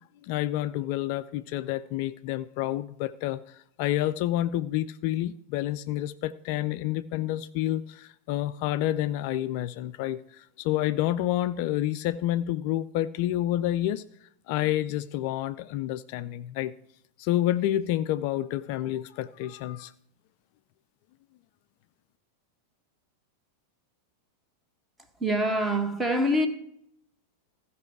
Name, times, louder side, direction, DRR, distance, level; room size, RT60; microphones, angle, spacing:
voice 1, 0.2-14.0 14.5-16.7 17.2-19.9, left 13 dB, 45° left, 0.3 m, -29 dB
voice 2, 25.2-26.5, equal, 10° right, 1.4 m, -25 dB
15.0 x 5.4 x 4.7 m
figure-of-eight pair, 90°, 0 cm